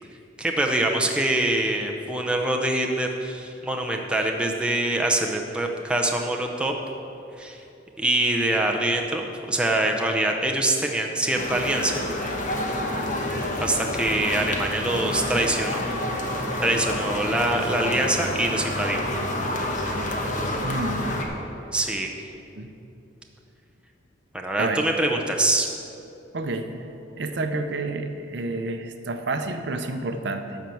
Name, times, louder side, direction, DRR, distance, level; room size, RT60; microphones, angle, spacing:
voice 1, 0.4-6.7 7.4-7.6 8.0-12.1 13.6-15.8 16.6-19.0 21.7-22.1 24.3-25.7, right 1 dB, 5° right, 1 dB, 0.6 m, -24 dB
sound 1, 11.3-21.3, left 1 dB, 40° left, 1.1 m, -28 dB
voice 2, 20.6-21.2 22.6-22.7 24.6-24.9 26.3-26.9 27.2-30.6, right 2 dB, 60° right, 6 dB, 0.6 m, -29 dB
12.5 x 4.5 x 7.7 m, 2.8 s
head